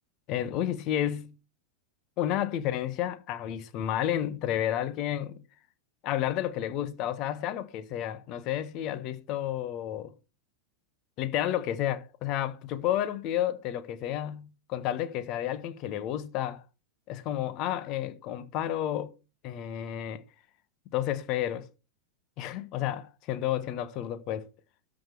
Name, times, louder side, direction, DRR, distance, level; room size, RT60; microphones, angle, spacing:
voice 1, 0.3-1.3 2.2-5.4 6.0-10.1 11.2-16.6 17.1-19.1 19.4-20.2 20.9-21.7 22.4-24.5, left 11 dB, 40° left, 1.2 m, -31 dB
13.0 x 6.5 x 4.6 m
figure-of-eight pair, 90°, 0 cm